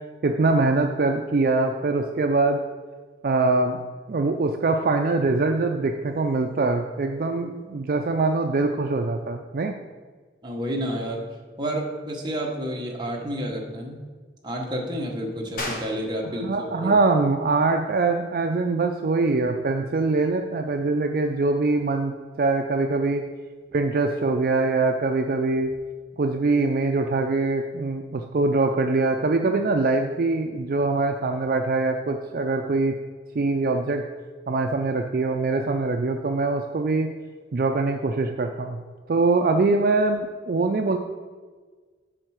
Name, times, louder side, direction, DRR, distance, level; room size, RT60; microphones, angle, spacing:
voice 1, 0.2-2.6 3.2-3.8 4.1-9.7 16.4-23.2 23.7-25.7 26.2-32.9 33.3-34.0 34.5-37.1 37.5-38.8 39.1-41.0, right 3 dB, 55° right, 4 dB, 0.4 m, -23 dB
voice 2, 10.4-11.2 11.6-14.0 14.4-16.9 22.8-22.9, equal, 25° right, -1 dB, 1.2 m, -30 dB
sound 1, 15.6-25.8, left 1 dB, 50° left, 1.4 m, -43 dB
7.7 x 4.4 x 6.4 m, 1.5 s
head